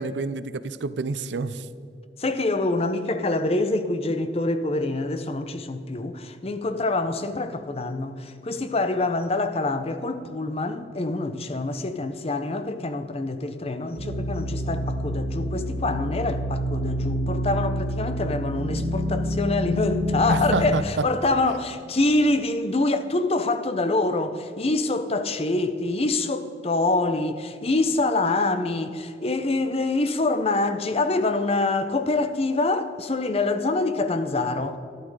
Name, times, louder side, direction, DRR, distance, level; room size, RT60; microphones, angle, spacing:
voice 1, 0.0-1.7 20.3-20.8, right 4 dB, 80° right, 0.5 m, -28 dB
voice 2, 2.2-34.8, left 2 dB, 35° left, 0.7 m, -25 dB
sound 1, 14.0-20.7, equal, 55° right, 1.7 m, -27 dB
12.5 x 11.5 x 4.8 m
head